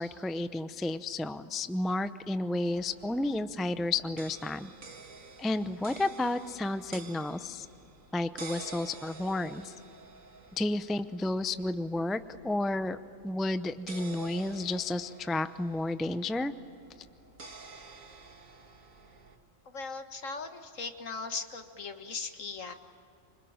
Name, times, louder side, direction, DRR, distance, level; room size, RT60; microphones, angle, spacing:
voice 1, 0.0-4.7 5.4-7.7 8.1-9.7 10.6-13.0 13.2-16.5, left 2 dB, ahead, 11 dB, 0.4 m, -31 dB
sound 1, 2.7-19.4, right 4 dB, 75° right, 2.4 m, -50 dB
voice 2, 19.7-22.7, left 4 dB, 70° left, 7 dB, 2.0 m, -39 dB
27.0 x 25.0 x 8.8 m, 2.7 s
omnidirectional pair, 1.4 m